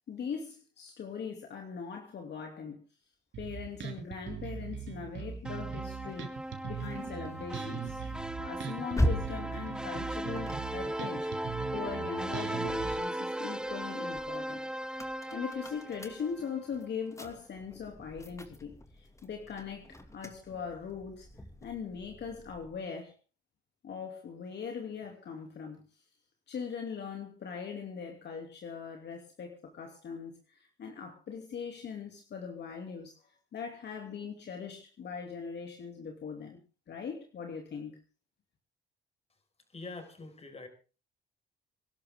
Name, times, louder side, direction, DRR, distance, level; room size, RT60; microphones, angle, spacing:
voice 1, 0.1-2.8 3.4-6.3 6.6-8.0 8.4-14.6 15.3-21.3 21.6-23.1 23.8-25.8 26.5-33.2 33.5-36.6 36.9-38.0, left 6 dB, 60° left, 2 dB, 2.9 m, -40 dB
Bass guitar, 3.3-12.9, right 8 dB, 70° right, 3.0 m, -40 dB
sound 1, 5.4-16.7, right 1 dB, 5° right, 0.8 m, -37 dB
sound 2, 6.1-12.6 13.1-22.9, equal, 15° left, 2.5 m, -40 dB
voice 2, 39.7-40.7, left 3 dB, 30° left, 5 dB, 5.4 m, -44 dB
25.5 x 12.0 x 3.7 m, 0.35 s
cardioid pair, 90°, 20 cm